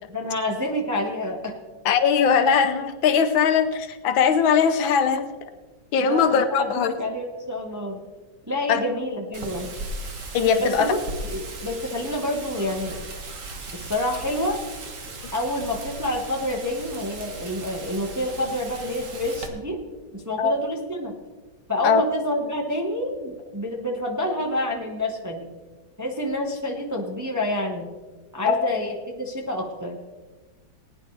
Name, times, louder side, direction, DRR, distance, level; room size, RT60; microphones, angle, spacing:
voice 1, 0.1-1.6 6.0-8.0 8.5-9.7 10.6-11.0 11.3-13.1 13.7-14.6 15.3-19.8 20.1-21.1 21.7-25.5 26.0-27.9 28.3-30.0, left 1 dB, 10° right, 1 dB, 1.0 m, -28 dB
voice 2, 1.8-5.3 5.9-6.9 8.7-8.8 10.3-10.9 20.4-20.5 21.8-22.0 28.5-28.7, left 6 dB, 75° left, 9 dB, 1.5 m, -20 dB
Wind, 9.3-19.5, right 2 dB, 45° right, 1.5 m, -37 dB
19.5 x 9.9 x 3.3 m, 1.3 s
omnidirectional pair, 2.2 m